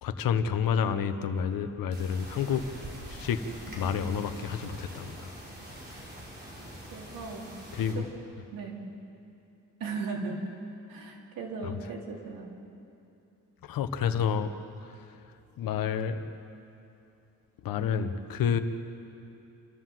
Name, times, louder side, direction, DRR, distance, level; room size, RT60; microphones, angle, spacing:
voice 1, 0.0-2.6 3.1-3.4 3.8-5.3 7.7-8.1 11.6-11.8 13.6-14.5 15.6-16.3 17.6-18.6, left 7 dB, 85° left, 9 dB, 1.2 m, -29 dB
sound 1, 1.9-7.9, right 1 dB, 30° right, 4.0 m, -44 dB
voice 2, 6.9-7.5 8.5-8.8 9.8-10.4 10.9-12.5, right 4 dB, 85° right, 0 dB, 3.1 m, -37 dB
28.5 x 13.5 x 7.7 m, 2.7 s
cardioid pair, 140°, 33 cm